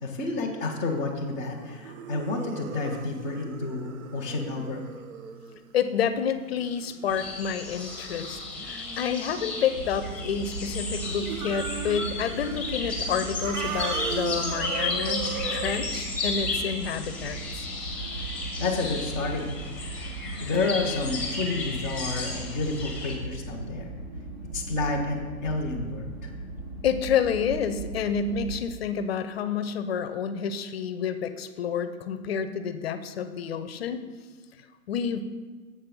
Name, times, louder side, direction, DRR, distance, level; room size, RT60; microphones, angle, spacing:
voice 1, 0.0-4.8 18.6-19.7 20.4-23.9 24.5-26.3, left 3 dB, 15° right, -8 dB, 0.3 m, -30 dB
sound 1, 1.0-10.6 10.9-12.6 12.9-15.7, right 7 dB, 70° right, 0.8 m, -38 dB
voice 2, 5.7-17.6 26.8-34.0 34.9-35.2, left 7 dB, 45° left, 11 dB, 0.5 m, -29 dB
sound 2, 7.1-23.2, left 3 dB, 5° left, 0.9 m, -34 dB
sound 3, 9.7-28.6, right 3 dB, 50° right, 1.5 m, -38 dB
7.4 x 6.0 x 5.2 m, 1.5 s
hypercardioid pair, 140°, 43 cm